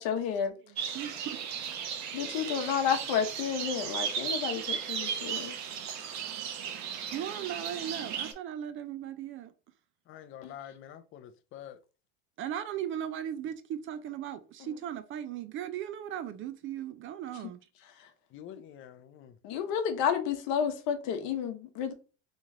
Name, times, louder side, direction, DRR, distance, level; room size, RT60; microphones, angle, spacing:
voice 1, 0.0-0.5 2.1-5.5 10.4-10.5 14.6-14.7 19.4-21.9, left 7 dB, 60° left, 1.0 m, -31 dB
voice 2, 0.6-1.4 7.1-9.5 12.4-17.6, right 10 dB, 35° right, 0.4 m, -37 dB
sound 1, 0.8-8.3, right 7 dB, 50° right, 0.9 m, -36 dB
voice 3, 10.1-11.8 18.3-19.3, left 10 dB, 35° left, 0.5 m, -47 dB
3.1 x 3.0 x 3.7 m
supercardioid pair, 115°, 35 cm